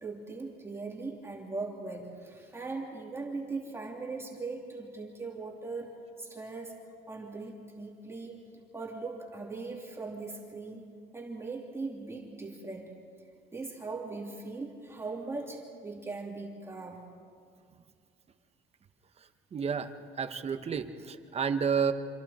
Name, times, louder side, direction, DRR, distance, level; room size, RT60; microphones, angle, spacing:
voice 1, 0.0-6.8 7.1-8.5 8.7-12.9 13.5-17.0, right 3 dB, 15° right, -2 dB, 3.1 m, -40 dB
voice 2, 19.5-19.9 20.2-21.9, right 6 dB, 35° right, 8 dB, 1.3 m, -30 dB
26.5 x 26.5 x 4.3 m, 2.2 s
cardioid pair, 110°, 17 cm